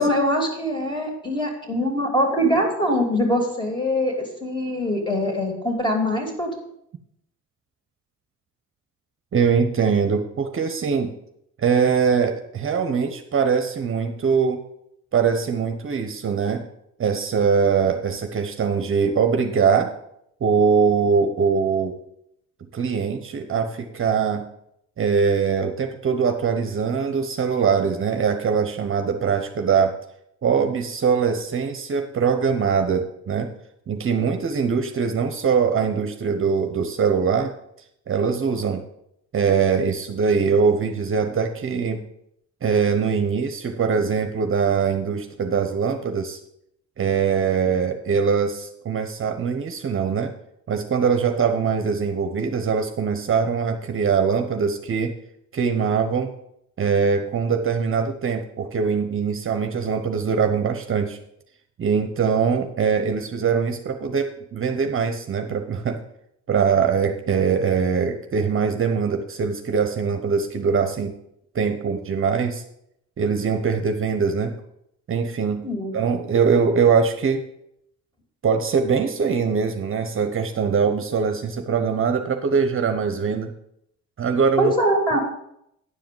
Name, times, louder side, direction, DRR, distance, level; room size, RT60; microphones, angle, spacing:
voice 1, 0.0-6.5 75.6-75.9 84.6-85.2, equal, 15° left, 2 dB, 2.9 m, -23 dB
voice 2, 9.3-11.1 11.6-14.6 15.1-16.6 17.0-19.9 20.4-22.0 22.7-24.4 25.0-30.0 30.4-33.5 33.9-37.5 38.1-38.8 39.3-42.0 42.6-46.4 47.0-50.3 50.7-55.1 55.5-56.3 56.8-61.2 61.8-66.0 66.5-71.1 71.5-72.6 73.2-74.5 75.1-75.6 75.9-77.4 78.4-83.5 84.2-84.7, right 6 dB, 45° right, 7 dB, 0.9 m, -22 dB
10.0 x 4.9 x 7.7 m, 0.77 s
cardioid pair, 90°, 30 cm